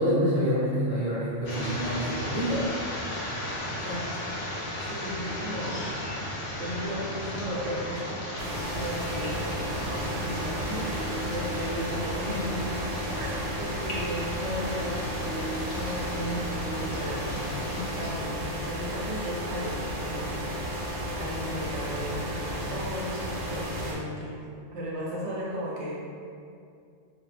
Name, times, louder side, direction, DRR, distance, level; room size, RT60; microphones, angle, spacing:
voice 1, 0.0-2.7, equal, 25° left, -11 dB, 0.6 m, -26 dB
sound 1, 1.5-18.1, left 1 dB, 75° left, 0.9 m, -35 dB
voice 2, 3.8-4.3 4.8-5.9 6.6-12.7 13.2-13.3 13.6-20.5 20.8-24.4 24.7-26.1, equal, 70° right, -5 dB, 0.8 m, -35 dB
sound 2, 8.4-24.0, equal, 90° right, 1.0 m, -33 dB
2.7 x 2.0 x 2.4 m, 2.4 s
omnidirectional pair, 1.3 m